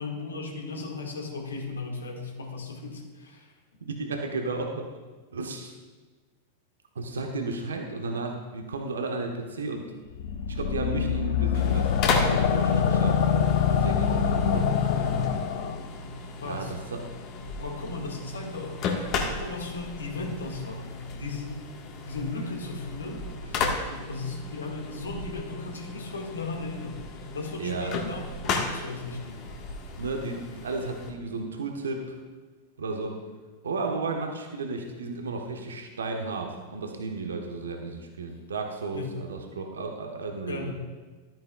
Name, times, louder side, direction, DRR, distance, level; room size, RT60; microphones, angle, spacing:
voice 1, 0.0-3.5 16.4-16.7 17.6-18.8 19.2-21.7 22.0-23.2 23.9-27.0 27.3-29.4 38.9-39.2 40.5-40.7, left 3 dB, 80° left, 0 dB, 1.8 m, -36 dB
voice 2, 3.8-4.8 5.3-5.7 6.9-9.9 10.5-13.2 13.7-14.9 16.5-17.0 23.5-23.6 27.6-27.9 30.0-32.2 32.8-33.2 33.6-40.7, right 3 dB, 75° right, 2 dB, 1.1 m, -33 dB
sound 1, 10.2-15.8, left 8 dB, 60° left, 0.7 m, -24 dB
sound 2, 11.5-31.1, left 3 dB, 40° left, 1.4 m, -34 dB
12.5 x 9.2 x 2.4 m, 1.3 s
figure-of-eight pair, 95°, 0 cm